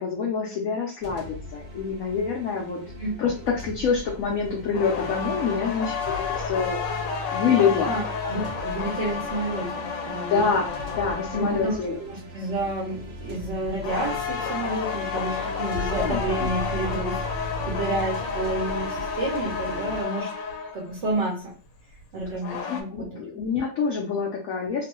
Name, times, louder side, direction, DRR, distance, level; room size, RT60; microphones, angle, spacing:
voice 1, 0.0-2.8 3.2-5.9 6.4-6.8 7.3-8.0 10.3-12.0 15.3-15.5 15.8-16.5 22.5-24.9, left 5 dB, 65° left, -2 dB, 0.9 m, -26 dB
sound 1, 1.0-20.0, left 1 dB, 90° right, 0.5 m, -38 dB
sound 2, 4.7-11.9 13.8-20.9 22.2-22.8, left 6 dB, 80° left, 1.2 m, -31 dB
voice 2, 7.9-10.5 11.3-20.3 20.7-21.5 22.1-23.2, right 2 dB, 55° right, -4 dB, 0.8 m, -30 dB
3.0 x 2.1 x 2.9 m, 0.39 s
omnidirectional pair, 1.9 m